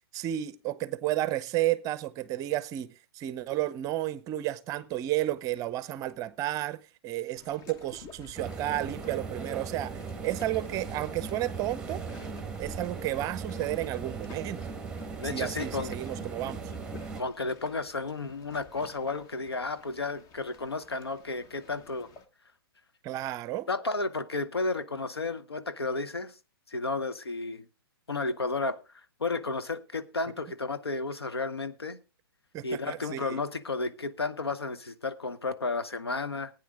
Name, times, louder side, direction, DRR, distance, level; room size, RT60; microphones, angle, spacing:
voice 1, 0.1-12.0 12.6-14.7 15.2-16.7 23.0-23.7 32.5-33.4, right 14 dB, 25° right, 0.7 m, -32 dB
sound 1, 7.4-22.3, left 5 dB, 25° left, 1.3 m, -52 dB
sound 2, 8.3-17.2, right 5 dB, 5° right, 1.6 m, -38 dB
voice 2, 15.2-15.9 17.2-22.1 23.7-26.3 26.7-27.7 28.1-32.0 32.6-36.5, left 3 dB, 90° left, 1.2 m, -32 dB
16.0 x 9.4 x 3.7 m
hypercardioid pair, 125°, 13 cm